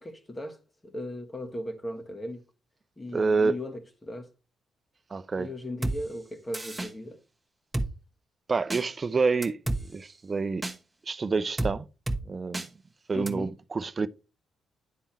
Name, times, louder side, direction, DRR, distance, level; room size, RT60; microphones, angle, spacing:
voice 1, 0.0-2.4 3.0-4.3 5.4-7.2 13.1-13.5, left 1 dB, 25° left, 1.6 m, -37 dB
voice 2, 3.1-3.6 5.1-5.5 8.5-9.6 9.9-10.7 11.1-11.8 12.3-12.7 13.1-14.1, right 4 dB, 40° right, 0.6 m, -27 dB
Drum kit, 5.8-6.0 6.5-6.9 7.7-7.9 8.7-8.8 9.4-9.8 10.6-10.7 11.6-11.7 12.1-12.2 12.5-12.7 13.3-13.4, right 2 dB, 15° right, 1.2 m, -29 dB
10.5 x 3.6 x 4.3 m
supercardioid pair, 60°, 0 cm